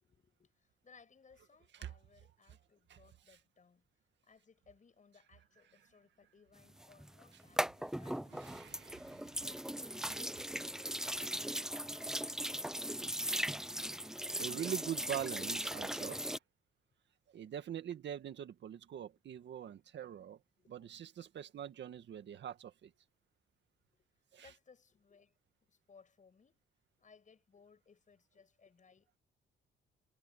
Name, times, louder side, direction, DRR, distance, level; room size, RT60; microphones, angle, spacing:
voice 1, 0.0-3.9 4.2-8.4 20.6-20.9 23.9-25.3 25.7-26.6 27.0-29.1, left 5 dB, 40° left, 7.2 m, -65 dB
sound 1, 6.8-16.4, right 1 dB, 5° right, 0.6 m, -38 dB
voice 2, 8.3-9.4 10.3-10.4 14.4-16.4 17.3-20.4 20.7-22.9 24.3-24.5, right 10 dB, 65° right, 1.9 m, -43 dB
cardioid pair, 90°, 20 cm